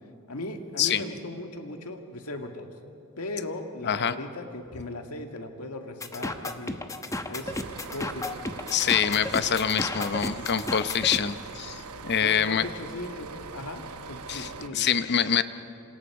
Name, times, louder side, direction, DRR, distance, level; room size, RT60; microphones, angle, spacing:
voice 1, 0.3-2.7 3.2-6.8 7.3-7.5 7.9-8.5 12.2-14.9, left 2 dB, 90° left, 5 dB, 2.0 m, -37 dB
sound 1, 6.0-11.2, left 2 dB, 15° left, 1.0 m, -33 dB
sound 2, 7.4-14.7, right 4 dB, 85° right, 1.1 m, -42 dB
voice 2, 8.7-12.6 14.3-15.4, left 8 dB, 50° left, 12 dB, 0.8 m, -25 dB
27.5 x 27.0 x 4.9 m, 2.7 s
head